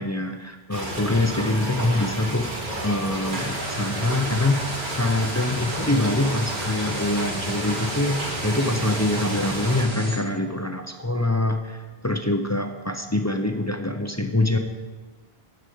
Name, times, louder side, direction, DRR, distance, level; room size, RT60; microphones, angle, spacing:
voice 1, 0.0-2.5 2.8-4.6 4.9-14.6, left 2 dB, 20° left, 5 dB, 0.5 m, -24 dB
sound 1, 0.7-9.8, right 1 dB, 50° right, 1.7 m, -31 dB
sound 2, 3.3-10.2, right 2 dB, 85° right, 2.0 m, -34 dB
11.5 x 5.0 x 7.8 m, 1.3 s
omnidirectional pair, 1.1 m